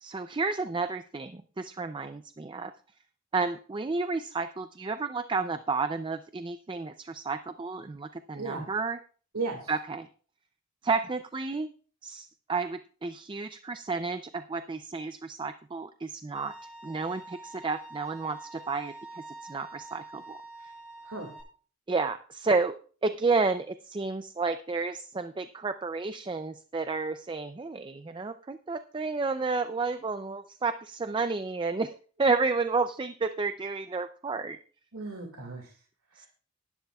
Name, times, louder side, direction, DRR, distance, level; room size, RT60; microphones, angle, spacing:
voice 1, 0.0-2.7 3.3-9.0 9.7-10.1 10.8-11.7 12.0-16.5 16.8-19.2 19.5-20.4 21.9-34.6 36.2-36.3, right 4 dB, 20° right, 10 dB, 0.4 m, -31 dB
voice 2, 8.3-8.7 9.3-9.7 21.0-21.3 34.9-35.7 36.1-36.3, right 3 dB, 90° right, 2 dB, 2.1 m, -36 dB
Bowed string instrument, 16.3-21.4, right 2 dB, 5° right, 6.9 m, -46 dB
17.0 x 11.5 x 2.3 m, 0.41 s
head